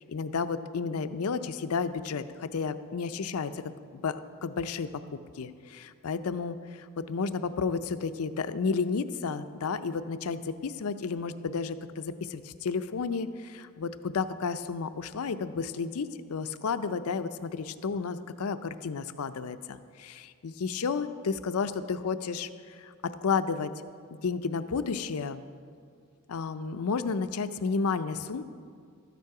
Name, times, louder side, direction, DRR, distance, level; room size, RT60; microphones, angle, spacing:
voice 1, 0.0-23.7 24.2-25.4 26.3-28.4, left 5 dB, 80° left, 12 dB, 0.5 m, -32 dB
13.0 x 9.3 x 4.8 m, 2.2 s
head